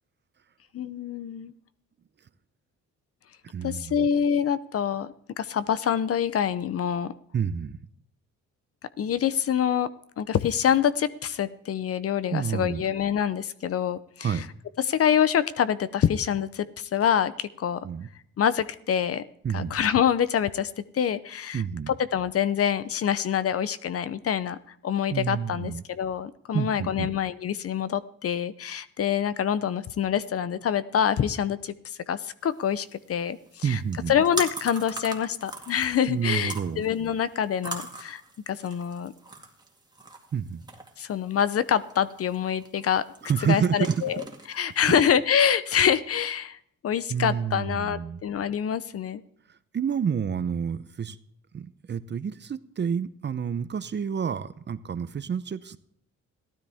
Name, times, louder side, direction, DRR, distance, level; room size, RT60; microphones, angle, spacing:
voice 1, 0.7-1.5 3.6-7.1 9.0-9.9 10.2-14.4 14.8-17.8 18.4-19.2 19.5-24.6 24.8-33.8 34.1-39.1 41.0-43.0 43.5-44.2 44.5-46.6 46.8-49.2, left 8 dB, 50° left, 15 dB, 0.7 m, -26 dB
voice 2, 3.4-4.1 7.3-7.8 12.3-12.8 14.2-14.4 17.8-18.1 19.4-19.8 21.5-21.9 25.1-25.8 26.5-27.1 33.6-34.2 36.1-36.8 40.3-40.6 43.2-44.0 44.9-45.0 47.1-48.2 49.5-51.2 51.5-55.8, right 7 dB, 35° right, 14 dB, 0.7 m, -29 dB
sound 1, 32.4-45.1, right 2 dB, 15° right, 2.1 m, -41 dB
15.0 x 12.5 x 3.6 m, 0.65 s
cardioid pair, 90°, 30 cm